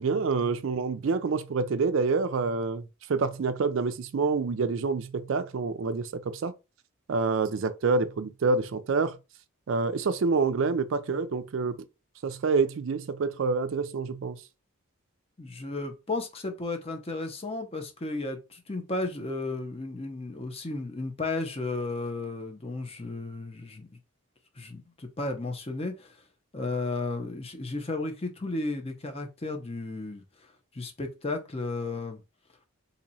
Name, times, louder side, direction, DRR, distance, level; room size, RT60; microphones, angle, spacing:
voice 1, 0.0-6.5 7.1-9.2 9.7-11.8 12.2-14.4, right 4 dB, 60° right, 0.4 m, -27 dB
voice 2, 15.4-23.9 24.6-26.2 26.5-30.2 30.7-32.2, left 2 dB, 25° left, 0.7 m, -34 dB
2.9 x 2.7 x 4.0 m
head